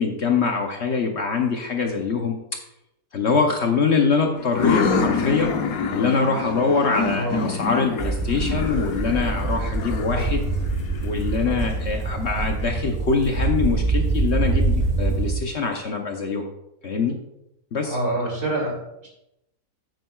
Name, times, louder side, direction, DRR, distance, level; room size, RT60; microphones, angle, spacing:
voice 1, 0.0-2.4 3.1-5.6 5.9-10.5 11.0-16.4 16.8-17.2 17.7-18.0, left 4 dB, 55° left, 3 dB, 0.9 m, -23 dB
sound 1, 4.4-11.9, left 5 dB, 70° left, 1.2 m, -27 dB
voice 2, 7.1-7.5 10.1-10.3 17.8-19.1, right 1 dB, 65° right, -2 dB, 3.1 m, -27 dB
sound 2, 8.0-15.3, right 3 dB, 25° right, 1.2 m, -25 dB
9.3 x 9.0 x 2.3 m, 0.86 s
omnidirectional pair, 1.6 m